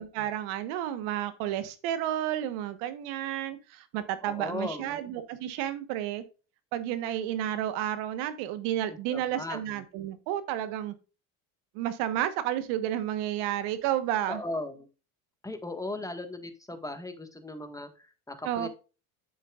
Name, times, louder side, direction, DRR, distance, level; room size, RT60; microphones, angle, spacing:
voice 1, 0.0-6.2 6.7-10.9 11.7-14.4 18.4-18.7, right 11 dB, 80° right, 12 dB, 1.3 m, -31 dB
voice 2, 4.3-5.0 9.1-9.6 14.3-14.9 15.4-18.7, left 2 dB, 5° left, 7 dB, 1.5 m, -37 dB
9.3 x 7.4 x 2.4 m, 0.33 s
supercardioid pair, 85°, 49 cm